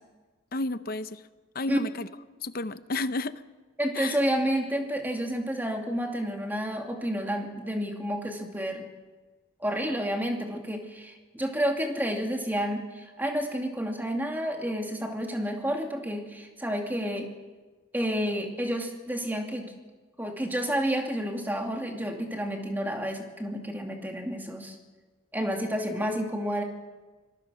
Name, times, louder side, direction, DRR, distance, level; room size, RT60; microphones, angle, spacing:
voice 1, 0.5-1.2 1.5-2.1 2.4-3.4 3.9-4.2, left 2 dB, 50° left, 13 dB, 0.7 m, -31 dB
voice 2, 3.8-8.9 9.6-17.3 17.9-19.7 20.2-24.8 25.3-26.6, equal, 10° right, 2 dB, 2.6 m, -30 dB
25.5 x 19.5 x 6.4 m, 1.3 s
head